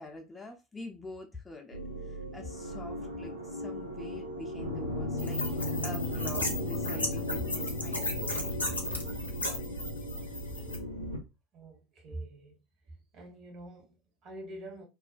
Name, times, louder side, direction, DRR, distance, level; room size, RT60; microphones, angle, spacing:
voice 1, 0.0-5.5 5.8-8.6, left 2 dB, 15° left, 0.5 m, -45 dB
sound 1, 1.7-11.2, left 1 dB, 85° right, 0.6 m, -36 dB
sound 2, 5.2-10.8, left 1 dB, 85° left, 0.5 m, -36 dB
voice 2, 11.5-12.6 12.8-14.8, right 1 dB, 40° right, 0.9 m, -45 dB
2.4 x 2.1 x 2.4 m
figure-of-eight pair, 75°, 0 cm